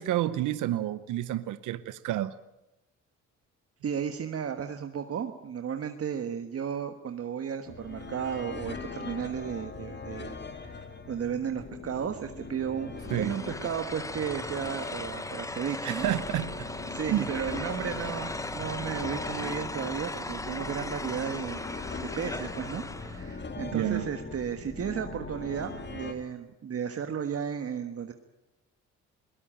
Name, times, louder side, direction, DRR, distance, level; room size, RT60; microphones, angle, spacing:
voice 1, 0.0-2.3 13.1-13.4 15.8-16.7 17.1-17.3 23.7-24.1, right 13 dB, 80° right, 14 dB, 0.9 m, -29 dB
voice 2, 3.8-16.1 16.9-21.7 22.0-28.1, right 7 dB, 50° right, 6 dB, 1.5 m, -34 dB
sound 1, 7.7-26.1, left 3 dB, 35° left, 2.5 m, -41 dB
sound 2, 13.0-23.3, left 2 dB, 10° left, 0.9 m, -38 dB
22.0 x 18.5 x 9.0 m, 0.95 s
cardioid pair, 90°, 30 cm